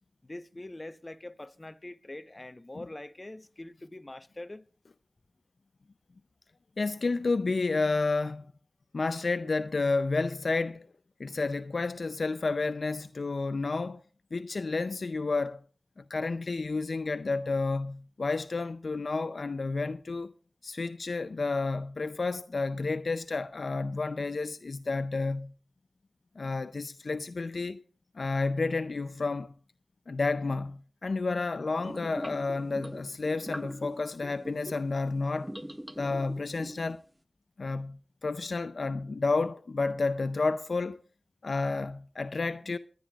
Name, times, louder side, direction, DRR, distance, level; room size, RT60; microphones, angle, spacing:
voice 1, 0.2-4.6, left 1 dB, 30° left, 0.9 m, -44 dB
voice 2, 6.8-8.5 8.9-10.9 11.2-14.0 14.3-15.6 16.0-20.3 20.6-25.5 26.4-27.8 28.1-29.5 30.1-35.5 36.0-37.0 37.6-41.0 41.4-42.8, left 3 dB, 70° left, 0.5 m, -31 dB
sound 1, 31.8-34.9 35.4-36.9, equal, 10° right, 0.6 m, -42 dB
22.5 x 10.5 x 2.4 m
cardioid pair, 45°, 0 cm